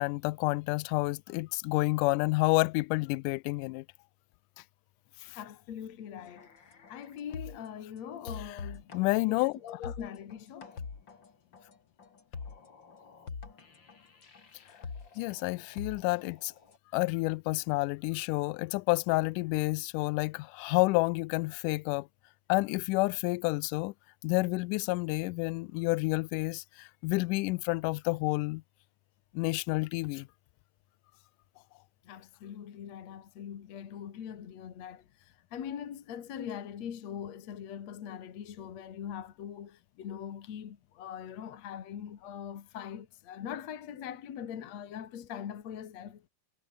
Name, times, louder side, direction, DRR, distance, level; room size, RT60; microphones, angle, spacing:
voice 1, 0.0-3.8 5.2-5.4 8.9-9.6 15.2-16.5 16.9-22.1 22.5-23.9 24.2-28.6 29.3-30.3, left 23 dB, 85° left, 2.1 m, -29 dB
voice 2, 5.3-10.7 32.0-46.2, left 9 dB, 60° left, 3.0 m, -42 dB
sound 1, 6.3-7.8 8.2-16.8, left 5 dB, 35° left, 3.3 m, -45 dB
omnidirectional pair, 3.7 m